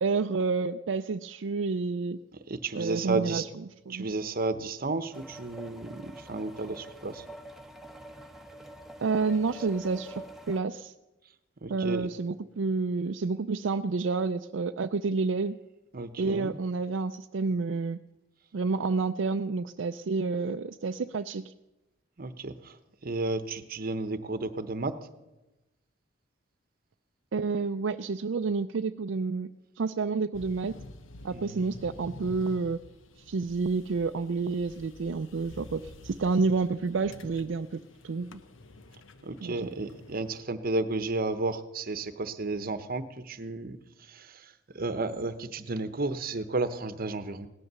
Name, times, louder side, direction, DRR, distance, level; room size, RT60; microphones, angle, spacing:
voice 1, 0.0-2.2 2.8-3.4 3.9-4.1 9.0-10.9 11.7-15.6 16.2-18.0 18.5-21.5 27.3-29.5 29.8-30.8 31.2-32.8 33.3-38.3 39.4-39.6, right 4 dB, 65° right, 8 dB, 0.4 m, -29 dB
voice 2, 2.3-3.5 3.9-7.2 11.6-12.1 15.9-16.6 22.2-24.9 31.3-31.6 39.2-47.5, right 3 dB, 50° right, 12 dB, 0.9 m, -33 dB
sound 1, 5.1-10.6, right 1 dB, ahead, 1.0 m, -46 dB
sound 2, 30.3-40.4, left 2 dB, 80° left, 1.0 m, -49 dB
17.5 x 11.0 x 6.8 m, 1.0 s
head